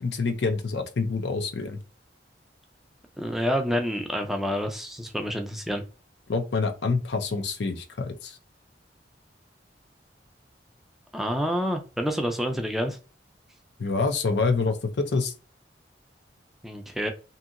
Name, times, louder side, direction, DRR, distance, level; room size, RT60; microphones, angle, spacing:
voice 1, 0.0-1.8 6.3-8.4 13.8-15.3, left 4 dB, 70° left, 0.5 m, -26 dB
voice 2, 3.2-5.8 11.1-13.0 16.6-17.1, equal, ahead, 0.4 m, -28 dB
2.7 x 2.7 x 2.5 m
head